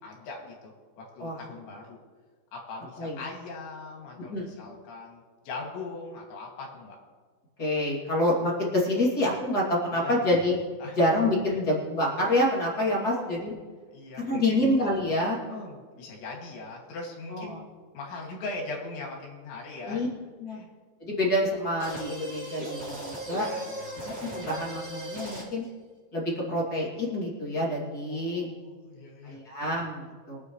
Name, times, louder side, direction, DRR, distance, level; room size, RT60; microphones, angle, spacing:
voice 1, 0.0-2.0 2.5-7.0 9.9-10.2 10.8-11.0 11.5-11.6 13.0-13.2 13.9-14.6 15.5-17.7 17.9-20.1 20.5-20.7 23.3-23.9 28.1-29.4, left 3 dB, 70° left, -1 dB, 4.4 m, -40 dB
voice 2, 7.6-10.5 11.0-13.5 14.2-15.4 17.3-17.6 19.9-20.1 20.4-20.6 21.0-23.5 24.2-25.6 26.1-28.5 29.2-30.4, left 1 dB, 30° left, -5 dB, 2.0 m, -27 dB
sound 1, 21.8-25.7, right 1 dB, 10° right, 1.2 m, -37 dB
24.0 x 9.2 x 3.2 m, 1.5 s
omnidirectional pair, 5.5 m